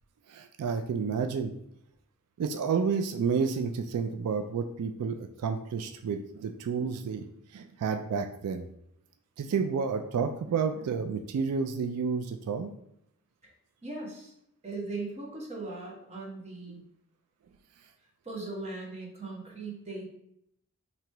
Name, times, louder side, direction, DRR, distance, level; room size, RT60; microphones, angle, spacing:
voice 1, 0.3-1.5 2.4-7.3 7.5-8.6 9.4-12.7, right 5 dB, 85° right, 6 dB, 0.3 m, -30 dB
voice 2, 13.8-14.3 14.6-16.8 18.2-20.1, right 3 dB, 30° right, -2 dB, 1.0 m, -39 dB
2.9 x 2.8 x 4.4 m, 0.76 s
head